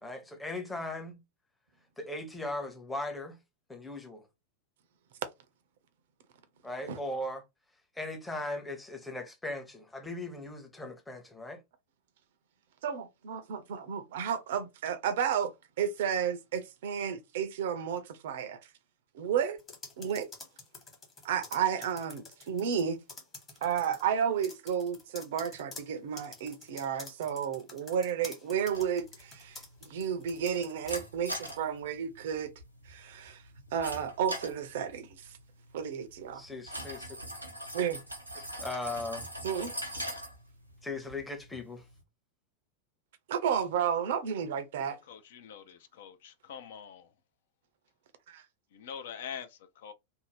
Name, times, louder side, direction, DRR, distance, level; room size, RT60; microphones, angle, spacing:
voice 1, 0.0-1.2 2.0-3.4 3.7-4.3 6.6-7.4 8.0-11.6 36.3-37.1 38.6-39.3 40.8-41.8, left 2 dB, 10° left, 0.7 m, -38 dB
voice 2, 12.8-18.6 19.1-19.6 20.0-20.3 21.2-23.0 23.6-32.5 32.9-33.4 33.7-35.1 35.7-36.4 37.7-38.0 39.4-39.7 43.3-45.0 48.3-48.4, right 8 dB, 55° right, 0.5 m, -32 dB
sound 1, 19.6-22.8 23.1-24.0 24.4-31.1 31.3-31.6, left 4 dB, 25° left, 1.1 m, -48 dB
untitled toilet handle, 28.7-42.0, right 1 dB, 90° right, 0.7 m, -43 dB
voice 3, 45.0-47.1 48.7-49.9, left 8 dB, 55° left, 0.4 m, -44 dB
2.6 x 2.0 x 3.1 m
figure-of-eight pair, 90°, 0 cm